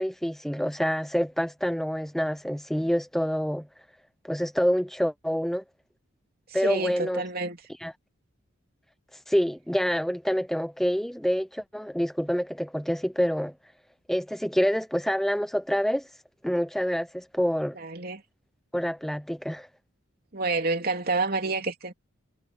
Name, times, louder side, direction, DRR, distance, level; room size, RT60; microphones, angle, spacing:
voice 1, 0.0-3.7 4.2-5.6 6.5-7.2 7.8-7.9 9.1-13.5 14.1-16.1 16.4-17.8 18.7-19.7, equal, ahead, 0.6 m, -27 dB
voice 2, 6.5-7.6 17.7-18.2 20.3-21.9, right 3 dB, 45° right, 3.3 m, -29 dB
head